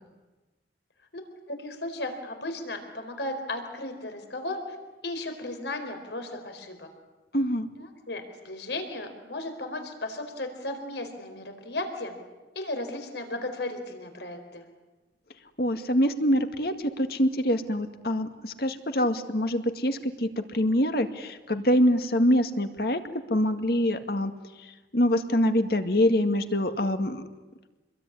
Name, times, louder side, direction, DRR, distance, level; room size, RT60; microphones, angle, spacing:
voice 1, 1.1-4.8 5.0-6.9 8.1-12.1 12.5-14.6, left 2 dB, 75° left, 6 dB, 4.4 m, -35 dB
voice 2, 7.3-7.7 15.6-23.0 23.3-24.3 24.6-27.2, equal, 60° left, 7 dB, 2.1 m, -25 dB
27.5 x 22.0 x 9.9 m, 1.2 s
head